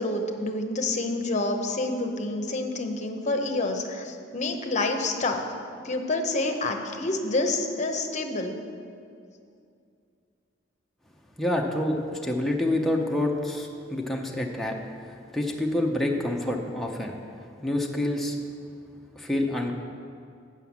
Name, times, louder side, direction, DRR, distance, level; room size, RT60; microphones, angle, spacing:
voice 1, 0.0-5.4 5.8-8.5, left 2 dB, 40° left, 4 dB, 0.8 m, -28 dB
voice 2, 11.4-14.8 15.3-17.2 17.6-18.4 19.2-19.7, left 1 dB, ahead, -1 dB, 0.6 m, -27 dB
7.6 x 5.8 x 7.1 m, 2.4 s
head